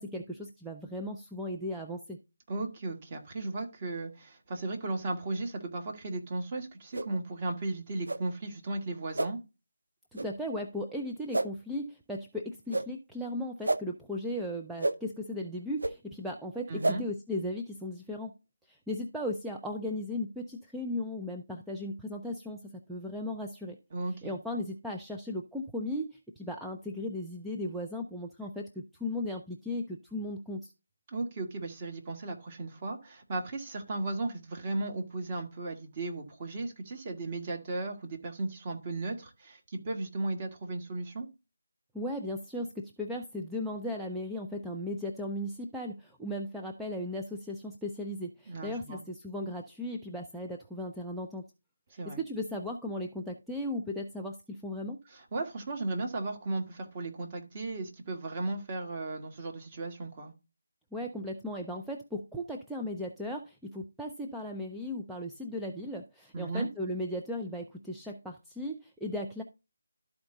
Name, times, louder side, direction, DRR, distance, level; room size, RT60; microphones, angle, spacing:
voice 1, 0.0-2.2 10.1-18.3 18.7-23.8 24.2-30.7 41.9-51.4 52.1-55.0 60.9-69.4, left 1 dB, ahead, 0.5 m, -36 dB
voice 2, 2.5-9.4 16.7-17.0 23.9-24.4 31.1-41.3 48.5-49.0 51.9-52.2 55.1-60.3 66.3-66.7, right 2 dB, 30° right, 1.7 m, -35 dB
sound 1, 6.9-7.1 8.0-8.2 9.1-9.3 10.1-10.3 11.3-11.5 12.7-12.9 13.6-13.8 14.8-15.0 15.8-15.9 16.8-17.0, right 2 dB, 75° right, 0.7 m, -29 dB
12.5 x 4.4 x 3.7 m
figure-of-eight pair, 160°, 0 cm